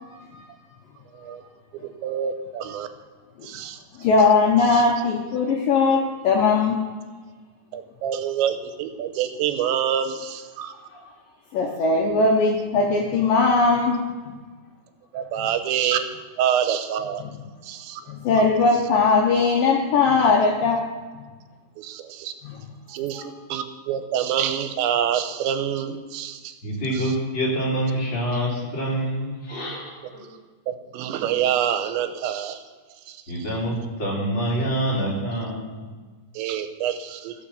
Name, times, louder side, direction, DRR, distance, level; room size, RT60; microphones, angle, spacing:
voice 1, 0.1-0.4 4.0-6.8 11.5-14.0 15.4-15.5 18.1-20.8 22.4-22.5, left 4 dB, 70° left, -1 dB, 2.2 m, -19 dB
voice 2, 1.8-2.9 3.4-3.8 4.7-4.8 7.7-10.7 15.1-16.0 16.4-17.2 17.6-18.0 21.8-22.3 22.9-23.2 23.5-26.5 30.7-32.6 33.1-33.2 36.4-37.3, right 9 dB, 90° right, 9 dB, 3.0 m, -26 dB
voice 3, 26.6-30.3 33.3-35.8, right 1 dB, 30° left, -6 dB, 3.3 m, -26 dB
15.0 x 5.9 x 7.0 m, 1.4 s
omnidirectional pair, 5.2 m